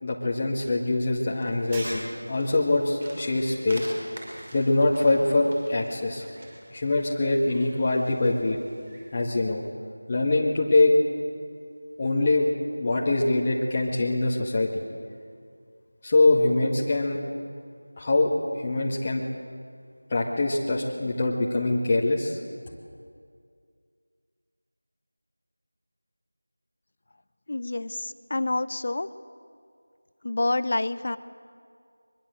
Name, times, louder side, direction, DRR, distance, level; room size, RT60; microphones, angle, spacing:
voice 1, 0.0-3.9 4.5-6.2 6.7-8.6 9.1-9.6 10.1-10.9 12.0-12.5 12.8-14.7 16.0-17.2 18.0-19.2 20.1-22.4, left 2 dB, 20° left, -4 dB, 1.8 m, -23 dB
sound 1, 0.9-9.2, right 1 dB, 30° right, 5.8 m, -47 dB
Shatter, 1.7-2.5, right 1 dB, 15° right, 7.0 m, -37 dB
voice 2, 27.5-29.1 30.2-31.2, left 2 dB, 40° left, 14 dB, 0.8 m, -28 dB
23.5 x 23.0 x 7.9 m, 2.2 s
figure-of-eight pair, 175°, 0 cm